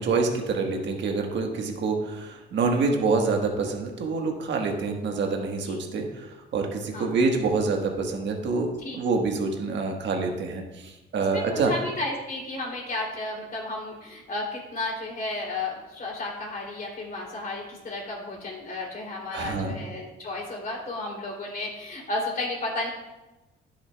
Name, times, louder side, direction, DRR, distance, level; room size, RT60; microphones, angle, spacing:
voice 1, 0.0-11.7 19.3-19.8, right 4 dB, 65° right, 2 dB, 1.3 m, -26 dB
voice 2, 11.3-22.9, left 2 dB, 45° left, -2 dB, 2.7 m, -33 dB
10.5 x 7.3 x 2.2 m, 1.1 s
cardioid pair, 90°, 20 cm